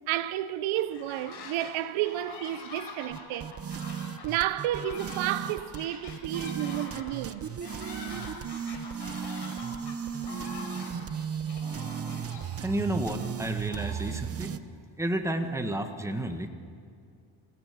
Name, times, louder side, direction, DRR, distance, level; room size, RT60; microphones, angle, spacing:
voice 1, 0.1-3.5 4.2-7.5, right 13 dB, 70° right, 0.8 m, -31 dB
sound 1, 0.8-1.7 2.0-14.3, left 4 dB, 55° left, 5.5 m, -45 dB
sound 2, 3.1-14.6, right 7 dB, 30° right, 0.8 m, -36 dB
voice 2, 12.6-14.5 15.0-16.5, right 1 dB, 5° right, 1.5 m, -31 dB
27.5 x 16.5 x 6.9 m
cardioid pair, 115°, 49 cm